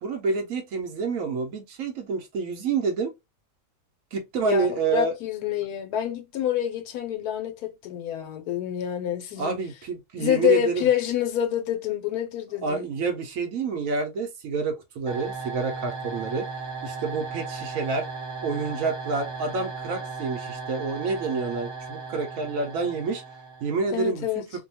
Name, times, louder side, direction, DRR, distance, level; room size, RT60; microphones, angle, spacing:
voice 1, 0.0-3.1 4.1-5.1 9.4-10.9 12.6-16.5 16.8-18.1 18.4-23.2 23.6-24.4, right 4 dB, 65° right, 0.9 m, -28 dB
voice 2, 4.4-9.6 10.2-12.9 23.9-24.5, left 10 dB, 80° left, 1.2 m, -27 dB
sound 1, 15.1-24.0, right 4 dB, 10° right, 1.0 m, -36 dB
2.7 x 2.2 x 2.7 m
omnidirectional pair, 1.7 m